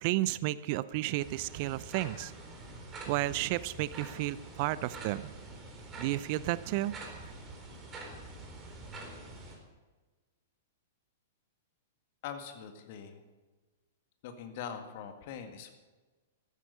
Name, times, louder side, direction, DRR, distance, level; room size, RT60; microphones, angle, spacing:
voice 1, 0.0-2.3 3.1-5.2 6.0-7.0, right 16 dB, 45° right, 18 dB, 0.5 m, -32 dB
sound 1, 1.2-9.6, right 2 dB, 25° right, 4.0 m, -46 dB
voice 2, 12.2-13.2 14.2-15.8, left 7 dB, 50° left, 6 dB, 2.0 m, -42 dB
14.5 x 13.5 x 5.5 m, 1.3 s
figure-of-eight pair, 105°, 0 cm